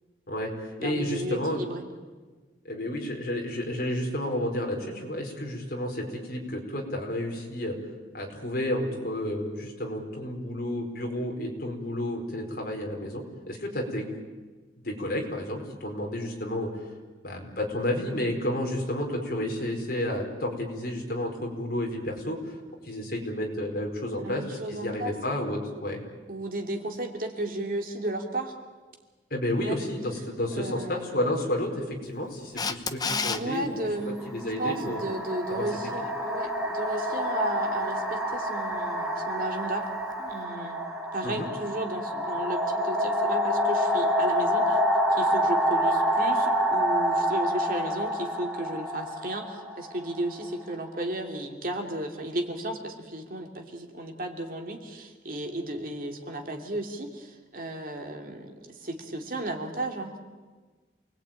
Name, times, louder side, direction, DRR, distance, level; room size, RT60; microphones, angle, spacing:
voice 1, 0.3-1.7 2.6-7.8 8.1-14.2 14.8-16.7 17.2-22.6 22.8-26.0 29.3-33.7 34.0-35.0 35.5-35.6 36.0-36.1 41.2-41.5, left 1 dB, 50° left, 1 dB, 4.8 m, -31 dB
voice 2, 0.8-1.8 24.1-25.1 26.3-28.5 29.6-29.8 30.5-31.3 33.3-34.2 34.6-39.9 40.2-40.8 41.1-44.8 45.1-60.2, right 1 dB, 50° right, 3 dB, 2.8 m, -34 dB
Camera, 32.6-33.4 40.1-40.2, left 4 dB, 20° left, 0.9 m, -28 dB
sound 1, 33.1-33.3 34.2-50.9, equal, ahead, 3.9 m, -28 dB
28.5 x 20.0 x 9.1 m, 1.4 s
head